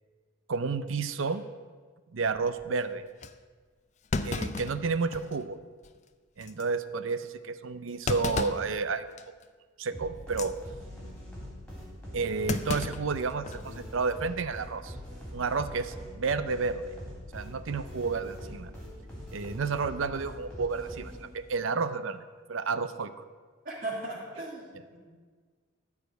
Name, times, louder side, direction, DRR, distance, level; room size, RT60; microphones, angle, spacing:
voice 1, 0.5-1.4 2.1-3.0 4.2-5.6 6.4-9.1 9.8-10.6 12.1-14.9 15.3-16.9 17.3-18.7 19.3-22.2 22.5-23.1, right 4 dB, 75° right, 13 dB, 0.6 m, -31 dB
Thump thud, 2.6-2.7 3.2-3.3 4.1-5.4 5.8-5.9 6.4-6.6 8.1-8.7 9.2-9.4 10.2-10.5 12.5-13.7 14.0-14.1 15.2-15.6, left 3 dB, 35° left, 0.5 m, -33 dB
sound 1, 9.9-21.5, equal, 5° left, 3.3 m, -43 dB
voice 2, 23.6-25.0, right 2 dB, 45° right, -3 dB, 3.1 m, -37 dB
13.5 x 5.0 x 8.0 m, 1.5 s
head